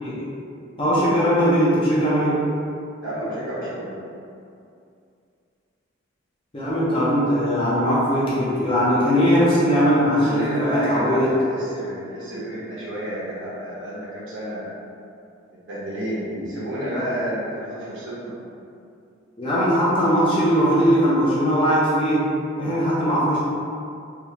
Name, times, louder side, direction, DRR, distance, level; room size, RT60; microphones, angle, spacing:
voice 1, 0.8-2.4 6.5-11.3 16.3-16.5 16.9-17.1 19.4-22.3 22.6-23.4, equal, 25° left, -9 dB, 0.6 m, -20 dB
voice 2, 3.0-4.0 10.2-14.7 15.7-18.3, equal, 80° right, -9 dB, 1.2 m, -30 dB
3.5 x 2.6 x 2.9 m, 2.5 s
head